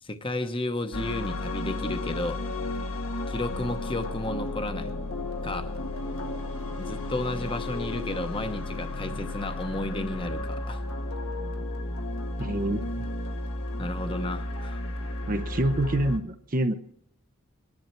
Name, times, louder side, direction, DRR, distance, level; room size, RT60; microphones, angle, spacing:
voice 1, 0.0-2.4 3.3-4.9 5.4-5.7 6.8-10.8 13.8-14.8, left 1 dB, 25° left, 8 dB, 1.0 m, -32 dB
sound 1, 0.9-16.2, left 2 dB, 85° left, 1.8 m, -33 dB
voice 2, 12.4-13.1 15.3-16.7, right 1 dB, 40° right, 8 dB, 0.7 m, -27 dB
21.5 x 10.5 x 4.5 m, 0.74 s
head